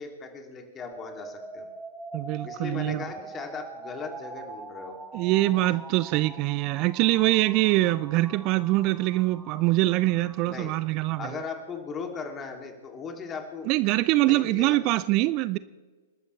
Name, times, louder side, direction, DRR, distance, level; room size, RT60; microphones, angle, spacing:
voice 1, 0.0-1.7 2.4-5.0 10.5-10.7 11.2-13.7 14.2-14.9, left 5 dB, 25° left, 2.8 m, -38 dB
sound 1, 0.9-10.9, right 2 dB, 10° right, 1.4 m, -44 dB
voice 2, 2.1-3.1 5.1-11.4 13.7-15.6, right 18 dB, 40° right, 0.4 m, -24 dB
28.5 x 12.5 x 3.3 m
figure-of-eight pair, 110°, 0 cm